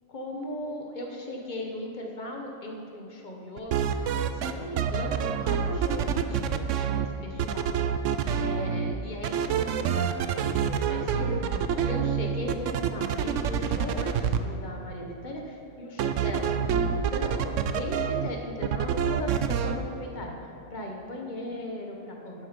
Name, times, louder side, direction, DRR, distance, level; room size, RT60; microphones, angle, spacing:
voice 1, 0.1-7.7 8.4-16.5 16.8-22.5, left 1 dB, 30° left, 1 dB, 1.1 m, -38 dB
sound 1, 3.6-4.5 4.8-7.1 7.4-8.9 9.2-14.4 16.0-18.3 18.6-19.8, right 7 dB, 75° right, 0.7 m, -27 dB
11.0 x 7.8 x 5.2 m, 2.5 s
omnidirectional pair, 1.8 m